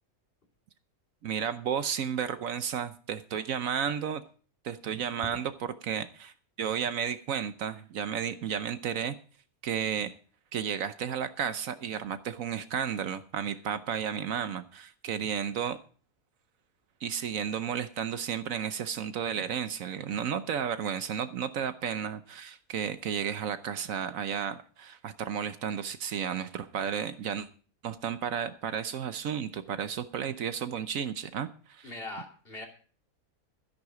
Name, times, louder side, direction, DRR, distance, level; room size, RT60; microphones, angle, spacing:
voice 1, 1.2-4.2 4.6-5.5 5.8-9.1 9.6-10.1 10.5-15.8 17.0-27.5 27.8-31.9, right 8 dB, 70° right, 11 dB, 1.1 m, -33 dB
voice 2, 31.8-32.7, left 2 dB, 40° left, 1 dB, 3.0 m, -40 dB
12.5 x 10.5 x 4.9 m, 0.41 s
omnidirectional pair, 1.5 m